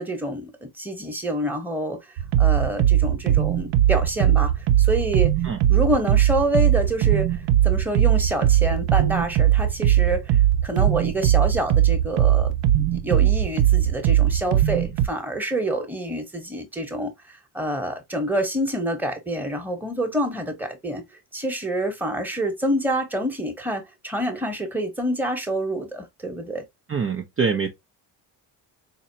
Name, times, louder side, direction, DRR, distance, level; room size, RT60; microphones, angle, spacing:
voice 1, 0.0-5.3 5.7-12.5 12.9-21.0 21.3-26.6, right 1 dB, 5° right, 1.2 m, -27 dB
sound 1, 2.2-15.1, right 12 dB, 70° right, 0.6 m, -19 dB
voice 2, 26.9-27.7, right 5 dB, 30° right, 0.7 m, -24 dB
4.0 x 2.9 x 2.8 m
cardioid pair, 80°, 44 cm